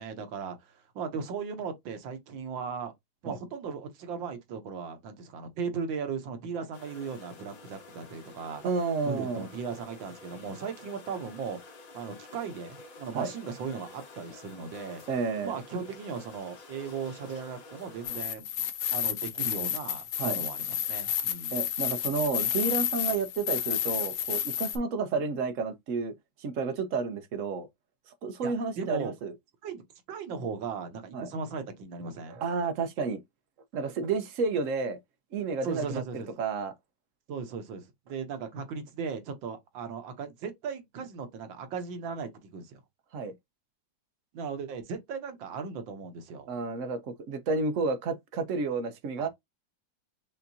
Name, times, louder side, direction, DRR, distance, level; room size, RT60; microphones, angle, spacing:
voice 1, 0.0-2.9 3.2-8.6 9.1-11.6 11.9-15.0 15.4-18.5 18.9-21.6 28.4-29.1 29.6-29.8 30.1-32.4 35.6-36.4 37.3-42.8 44.3-46.5 49.2-49.3, right 5 dB, 85° right, 1.7 m, -37 dB
sound 1, 6.7-18.2, left 3 dB, 85° left, 2.1 m, -50 dB
voice 2, 8.6-9.4 13.1-13.3 15.1-15.6 20.2-20.4 21.5-26.1 26.4-27.7 28.2-29.3 31.1-31.3 32.3-33.2 33.7-35.0 35.3-36.7 43.1-43.3 46.5-49.3, right 4 dB, 60° right, 0.8 m, -31 dB
sound 2, 18.0-24.8, left 10 dB, 65° left, 0.9 m, -31 dB
5.8 x 2.6 x 2.7 m
omnidirectional pair, 2.0 m